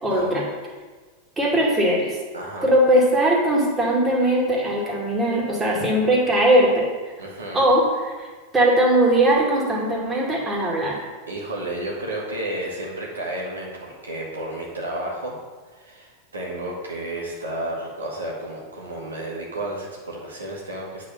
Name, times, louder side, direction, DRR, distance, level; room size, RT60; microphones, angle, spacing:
voice 1, 0.0-0.5 1.4-2.2 2.6-6.9 7.5-8.3 8.5-11.0, right 1 dB, 15° right, -3 dB, 2.3 m, -20 dB
voice 2, 2.3-2.7 7.2-7.6 11.3-15.3 15.7-21.1, right 1 dB, 80° right, -3 dB, 1.9 m, -32 dB
8.8 x 4.1 x 5.7 m, 1.4 s
figure-of-eight pair, 90°, 0 cm